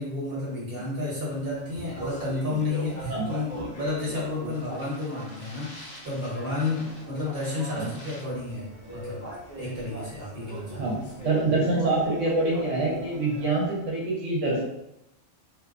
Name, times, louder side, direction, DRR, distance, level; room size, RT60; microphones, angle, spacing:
voice 1, 0.0-9.2 9.5-10.8, left 2 dB, 50° right, -7 dB, 1.1 m, -31 dB
Speech, 1.4-13.8, equal, 45° left, 0.6 m, -40 dB
voice 2, 10.8-14.6, right 2 dB, 75° right, -4 dB, 1.0 m, -26 dB
2.6 x 2.2 x 2.4 m, 0.84 s
omnidirectional pair, 1.3 m